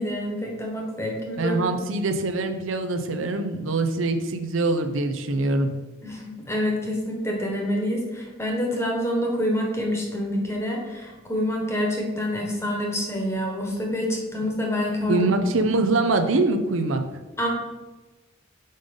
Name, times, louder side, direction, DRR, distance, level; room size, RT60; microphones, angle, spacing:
voice 1, 0.0-1.6 6.0-15.4 17.4-17.5, left 1 dB, 15° left, -1 dB, 1.2 m, -27 dB
voice 2, 1.4-5.7 15.1-17.0, right 2 dB, 75° right, 7 dB, 0.6 m, -23 dB
5.3 x 5.2 x 5.3 m, 1.2 s
head